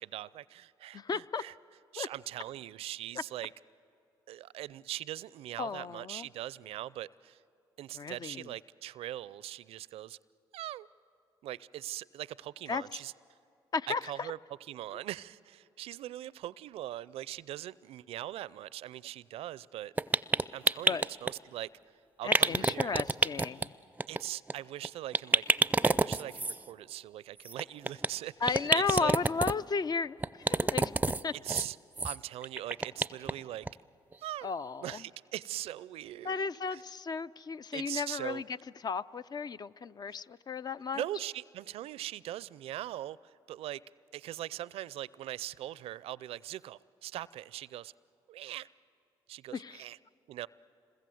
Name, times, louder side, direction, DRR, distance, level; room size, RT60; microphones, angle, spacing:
voice 1, 0.0-1.5 1.9-3.5 4.3-7.4 7.8-10.2 10.5-10.9 11.4-13.1 13.9-14.4 14.7-20.2 20.5-21.7 22.2-23.0 24.1-25.4 25.8-29.1 31.4-31.8 32.0-33.7 34.2-34.5 34.8-36.8 37.7-38.4 40.9-43.8 44.1-47.9 48.3-48.7 49.3-50.0 50.3-50.5, right 13 dB, 75° right, 0.5 m, -41 dB
voice 2, 0.9-1.4 2.0-2.1 5.6-6.3 7.9-8.5 12.7-12.8 13.7-14.3 20.9-21.1 22.2-23.7 28.4-30.9 31.2-31.3 34.4-35.0 36.2-38.4 38.8-41.0 49.5-49.8, left 5 dB, 40° left, 0.5 m, -34 dB
sound 1, 20.0-21.3 22.3-23.7 24.0-24.2 24.5-24.6 24.8-24.9 25.1-26.6 27.5-28.1 28.5-29.5 30.2-31.2 31.5-31.7 32.0-32.2 32.4-33.3 33.7-33.8 34.1-34.2, right 3 dB, 15° right, 0.5 m, -27 dB
26.5 x 21.0 x 7.8 m
supercardioid pair, 60°, 10 cm